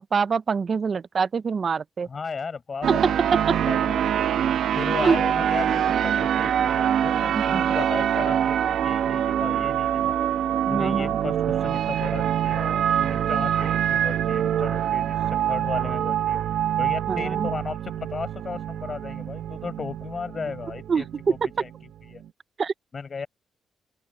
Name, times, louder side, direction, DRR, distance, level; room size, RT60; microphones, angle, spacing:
voice 1, 0.0-2.1 5.0-5.2 7.3-7.6 10.6-11.2 17.1-17.5 20.9-21.0 22.6-22.7, right 5 dB, 40° right, 0.4 m, -25 dB
voice 2, 2.1-3.2 3.5-4.3 4.7-10.3 10.7-16.4 16.8-21.7 22.1-22.2 22.9-23.3, left 5 dB, 35° left, 4.6 m, -35 dB
sound 1, 2.8-22.2, right 9 dB, 75° right, 0.9 m, -25 dB
open air
cardioid pair, 125°, 0 cm